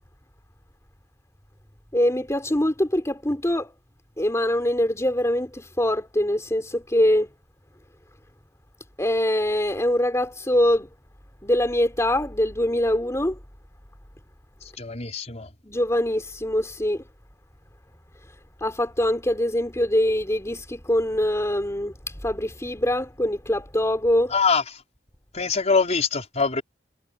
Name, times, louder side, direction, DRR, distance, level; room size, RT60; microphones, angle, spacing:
voice 1, 1.9-3.7 4.2-7.3 9.0-10.9 11.4-13.4 15.6-17.0 18.6-24.4, left 1 dB, 15° left, 3.6 m, -23 dB
voice 2, 14.8-15.5 24.3-24.6 25.3-26.6, left 5 dB, 40° left, 4.8 m, -23 dB
head